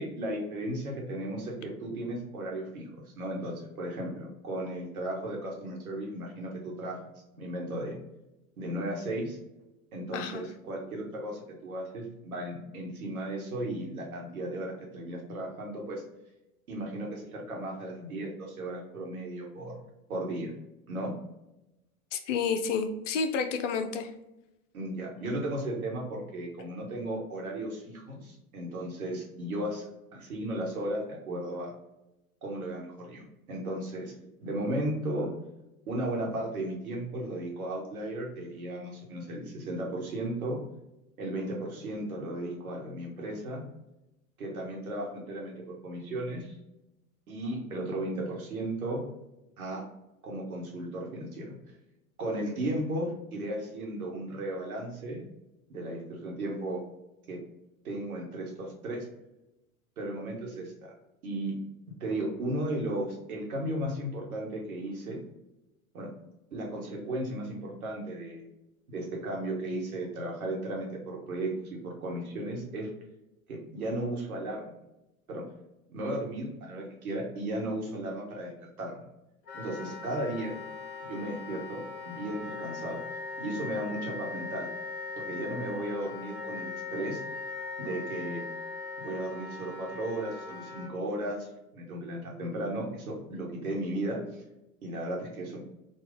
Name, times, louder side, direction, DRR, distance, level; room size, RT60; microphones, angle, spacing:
voice 1, 0.0-7.0 7.3-7.9 8.6-9.4 9.9-16.0 16.7-19.8 20.1-20.5 20.9-21.1 24.7-31.7 32.4-34.1 34.4-35.3 35.9-40.6 41.2-43.6 44.4-46.5 47.3-49.0 49.6-49.8 50.2-51.6 52.2-55.3 55.7-56.8 57.3-57.4 57.8-59.1 60.0-60.9 61.2-61.6 62.0-65.2 65.9-66.1 66.5-68.4 68.9-72.9 73.5-74.7 75.3-75.5 75.9-78.5 78.8-79.0 79.5-80.6 81.0-83.0 83.4-84.7 85.1-87.2 87.8-88.4 89.0-91.5 91.7-94.2 94.8-95.6, right 1 dB, 75° right, -1 dB, 1.4 m, -35 dB
voice 2, 10.1-10.4 22.1-24.1, left 5 dB, 60° left, 8 dB, 0.7 m, -30 dB
Wind instrument woodwind instrument, 79.5-90.9, left 4 dB, 40° left, 1.3 m, -40 dB
4.0 x 2.4 x 3.8 m, 0.92 s
figure-of-eight pair, 85°, 43 cm